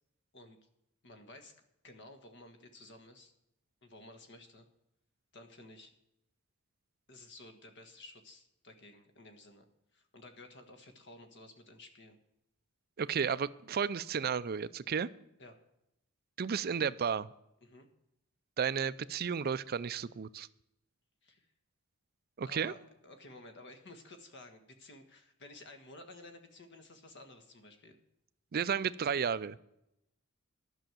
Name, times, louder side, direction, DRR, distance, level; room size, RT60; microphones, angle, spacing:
voice 1, 1.0-1.6 1.8-3.3 3.8-4.7 5.3-5.9 7.1-9.7 9.9-12.2 15.4-15.6 17.6-17.9 21.2-21.5 22.5-28.0, left 2 dB, 55° left, 7 dB, 1.6 m, -53 dB
voice 2, 13.0-15.1 16.4-17.3 18.6-20.5 22.4-22.7 28.5-29.6, right 7 dB, 45° right, 16 dB, 0.4 m, -33 dB
11.5 x 6.4 x 9.1 m, 0.83 s
head